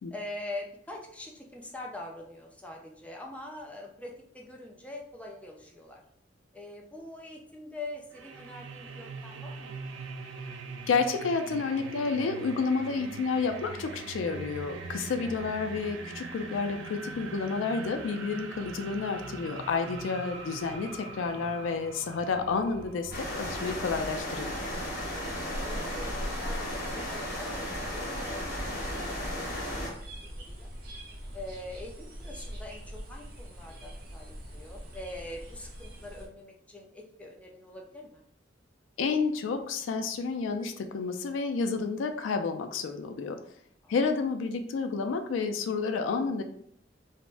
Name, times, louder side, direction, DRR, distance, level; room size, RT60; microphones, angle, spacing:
voice 1, 0.1-6.0 6.5-9.8 15.2-15.3 24.9-26.7 26.9-29.5 29.8-30.7 31.3-38.2 43.8-43.9, left 1 dB, 5° left, -1 dB, 0.4 m, -44 dB
sound 1, 8.1-26.1, right 4 dB, 80° right, 0.4 m, -43 dB
voice 2, 10.9-24.5 39.0-43.4 43.9-46.4, left 4 dB, 85° left, 7 dB, 0.3 m, -30 dB
sound 2, 23.1-29.9, equal, 55° left, 1.2 m, -34 dB
sound 3, 26.3-36.3, equal, 50° right, 0.7 m, -44 dB
3.4 x 2.0 x 2.5 m, 0.66 s
head